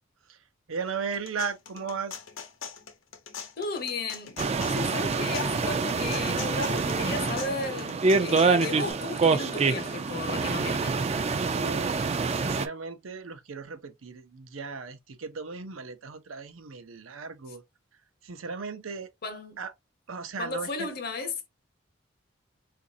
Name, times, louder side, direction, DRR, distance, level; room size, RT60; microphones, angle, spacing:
voice 1, 0.3-2.2 11.5-17.6 18.2-19.1 19.6-19.7 20.1-20.9, right 5 dB, 85° right, 0.6 m, -36 dB
sound 1, 0.9-8.9, left 7 dB, 80° left, 0.8 m, -42 dB
voice 2, 3.6-4.4 4.7-11.0 19.2-19.6 20.4-21.5, left 3 dB, 50° left, 0.9 m, -34 dB
sound 2, 4.4-12.7, right 4 dB, 30° right, 0.3 m, -26 dB
4.0 x 2.5 x 2.6 m
head